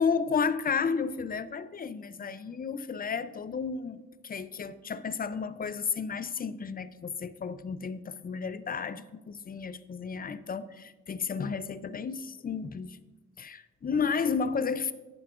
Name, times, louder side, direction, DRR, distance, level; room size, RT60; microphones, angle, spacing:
voice 1, 0.0-13.0 13.4-14.9, left 5 dB, 30° left, 0.4 m, -32 dB
11.0 x 9.4 x 2.4 m
cardioid pair, 110°, 32 cm